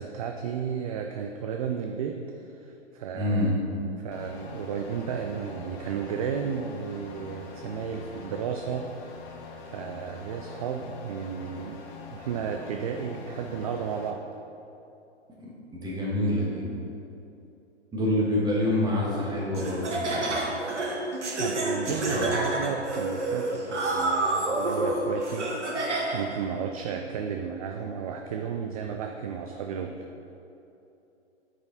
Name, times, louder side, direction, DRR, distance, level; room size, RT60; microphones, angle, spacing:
voice 1, 0.0-3.5 4.0-8.9 9.7-11.8 12.1-14.2 21.4-30.0, right 7 dB, 35° right, 4 dB, 0.4 m, -33 dB
voice 2, 3.1-3.5 15.4-15.5 15.7-16.6 17.9-20.4 21.9-22.2, left 1 dB, 10° right, -5 dB, 1.6 m, -27 dB
sound 1, 4.1-14.1, left 5 dB, 25° left, 0.8 m, -44 dB
Laughter, 19.5-26.4, right 2 dB, 80° right, 1.3 m, -29 dB
9.0 x 4.9 x 4.0 m, 2.9 s
figure-of-eight pair, 115°, 34 cm